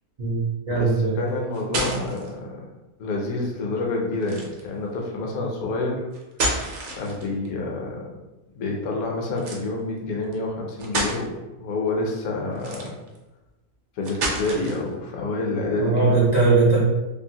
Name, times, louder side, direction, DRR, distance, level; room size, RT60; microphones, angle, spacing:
voice 1, 0.2-1.2 15.8-16.8, right 3 dB, 85° right, -7 dB, 0.3 m, -20 dB
voice 2, 0.7-2.6 3.0-5.9 7.0-8.0 8.5-11.3 11.6-12.9 14.0-16.5, left 2 dB, 80° left, -1 dB, 1.1 m, -28 dB
sound 1, 1.3-2.3 4.2-4.7 6.1-7.5 9.4-9.6 10.3-10.4 10.8-11.2 12.5-13.2 14.0-14.9, right 2 dB, 60° right, 0.8 m, -29 dB
2.8 x 2.5 x 2.7 m, 1.0 s
omnidirectional pair, 1.6 m